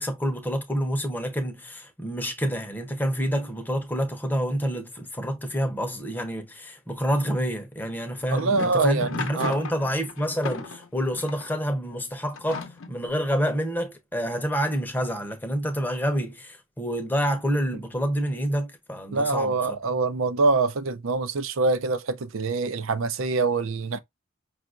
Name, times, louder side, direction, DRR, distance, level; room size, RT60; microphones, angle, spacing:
voice 1, 0.0-19.6, equal, 10° left, 0.7 m, -28 dB
sound 1, 8.0-11.6 12.3-13.1, left 4 dB, 65° left, 0.7 m, -37 dB
voice 2, 8.3-9.6 19.1-24.0, right 3 dB, 70° right, 0.5 m, -25 dB
5.4 x 2.4 x 2.4 m
head